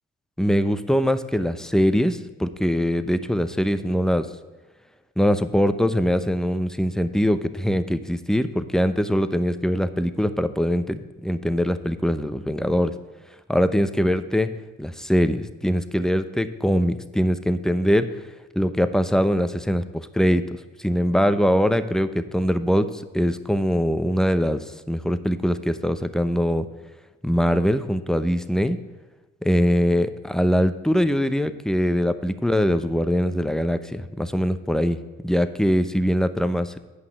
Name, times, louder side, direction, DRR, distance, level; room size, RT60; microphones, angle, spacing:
voice 1, 0.4-4.3 5.2-12.9 13.5-14.5 14.8-18.1 18.6-20.4 20.8-24.6 24.9-26.7 27.2-28.8 29.4-36.8, equal, ahead, 11 dB, 0.7 m, -22 dB
8.6 x 5.5 x 7.9 m, 1.2 s
cardioid pair, 60°, 31 cm